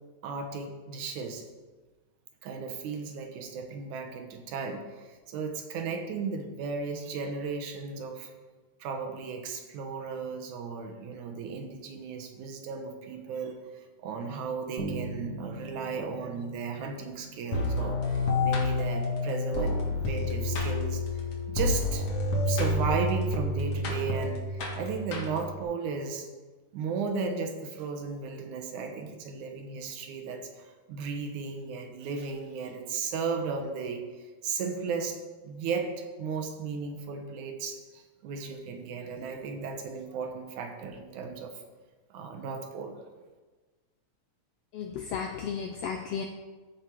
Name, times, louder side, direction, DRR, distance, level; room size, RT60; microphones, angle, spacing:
voice 1, 0.2-1.4 2.4-8.3 8.8-18.2 18.4-21.0 21.5-22.1 22.5-26.3 26.7-34.0 34.4-35.2 35.4-41.5 42.1-43.0, right 5 dB, 80° right, 4 dB, 2.5 m, -35 dB
Bass guitar, 14.8-18.6, right 2 dB, 60° right, 1.1 m, -41 dB
sound 1, 17.5-25.6, left 2 dB, 55° left, 2.4 m, -29 dB
voice 2, 44.7-46.2, left 7 dB, 80° left, 4 dB, 1.4 m, -34 dB
14.5 x 5.2 x 4.6 m, 1.3 s
omnidirectional pair, 3.4 m